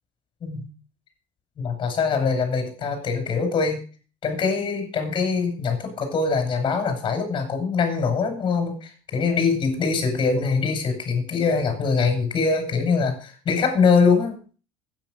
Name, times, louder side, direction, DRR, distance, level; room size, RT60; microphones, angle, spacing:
voice 1, 1.6-3.8 4.2-14.4, left 5 dB, 40° left, 5 dB, 5.9 m, -23 dB
12.5 x 9.9 x 6.6 m, 0.38 s
supercardioid pair, 100°, 13 cm